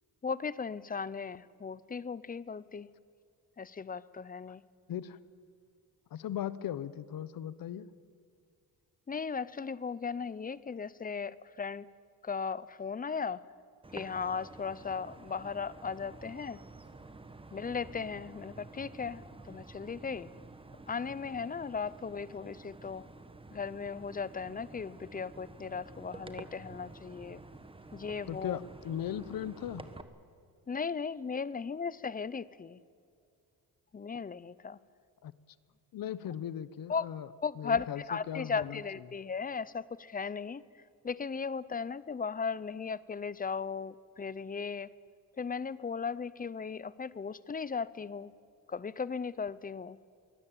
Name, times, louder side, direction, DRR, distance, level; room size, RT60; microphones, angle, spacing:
voice 1, 0.2-2.9 3.6-4.6 9.1-11.9 12.2-13.4 13.9-16.6 17.5-20.3 20.9-23.1 23.5-27.4 27.9-28.6 30.7-32.8 33.9-34.8 36.9-37.1 37.4-40.6 41.0-44.9 45.4-48.3 48.7-50.0, left 5 dB, 25° left, 19 dB, 0.6 m, -37 dB
voice 2, 6.1-7.9 28.3-29.9 35.2-35.3 35.9-37.3 37.6-38.0 38.3-38.8, left 10 dB, 65° left, 17 dB, 1.0 m, -38 dB
sound 1, 13.8-30.0, right 3 dB, 15° right, 1.3 m, -50 dB
23.5 x 17.0 x 9.0 m, 2.4 s
cardioid pair, 115°, 37 cm